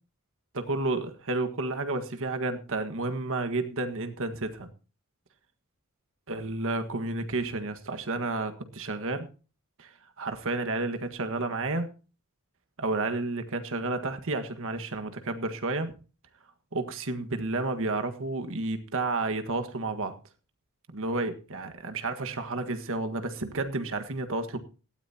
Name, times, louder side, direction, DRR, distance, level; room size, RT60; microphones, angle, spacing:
voice 1, 0.5-4.7 6.3-9.3 9.8-9.9 10.2-11.9 12.8-15.9 16.7-20.2 20.9-24.6, right 2 dB, 65° right, 7 dB, 1.6 m, -31 dB
17.5 x 13.5 x 2.8 m, 0.34 s
head